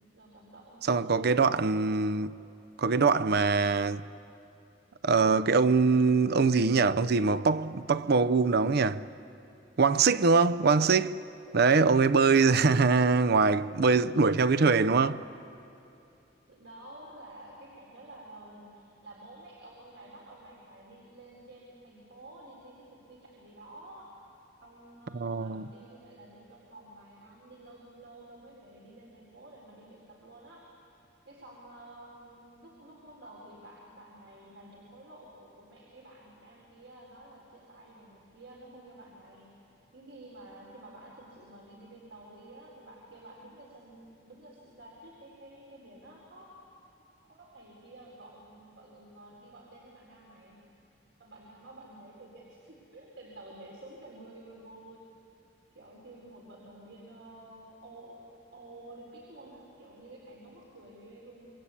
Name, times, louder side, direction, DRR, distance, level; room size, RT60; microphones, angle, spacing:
voice 1, 0.0-1.8 16.5-24.1 24.6-30.7 31.2-39.5 39.9-46.5 47.2-50.6 51.2-55.0 55.7-58.2 58.5-61.5, right 1 dB, 80° right, 4.3 m, -51 dB
voice 2, 0.9-2.4 2.8-4.0 5.0-9.0 9.8-11.2 11.5-15.2 25.1-25.7, right 4 dB, 60° right, 0.6 m, -23 dB
27.5 x 23.5 x 8.5 m
head